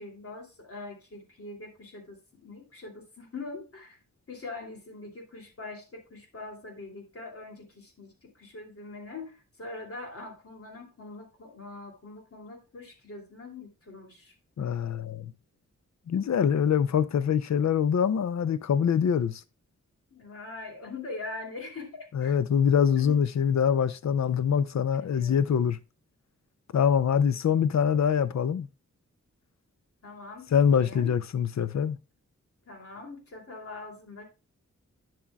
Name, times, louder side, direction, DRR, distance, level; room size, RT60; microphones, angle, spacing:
voice 1, 0.0-4.0 4.3-14.3 20.1-22.3 22.9-23.2 25.0-25.4 30.0-31.2 32.6-34.3, left 3 dB, 50° left, 2.6 m, -43 dB
voice 2, 14.6-15.3 16.1-19.4 22.1-25.8 26.7-28.7 30.5-32.0, left 7 dB, 65° left, 0.5 m, -24 dB
10.0 x 7.3 x 2.3 m
wide cardioid pair, 95°, 30 cm